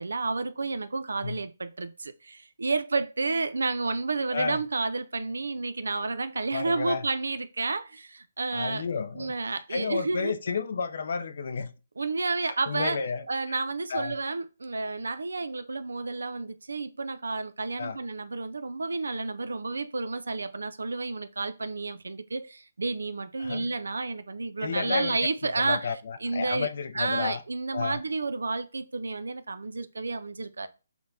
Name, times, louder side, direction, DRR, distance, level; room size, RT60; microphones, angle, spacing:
voice 1, 0.0-8.8 9.1-10.3 12.0-13.0 13.3-26.7 26.9-30.7, right 3 dB, 90° right, 0.3 m, -31 dB
voice 2, 6.5-7.0 8.5-9.3 9.7-11.7 12.4-13.2 13.9-14.2 17.8-18.0 23.4-23.7 24.6-27.4 27.7-28.0, left 5 dB, 60° left, 0.4 m, -31 dB
5.9 x 2.1 x 2.6 m
hypercardioid pair, 155°, 0 cm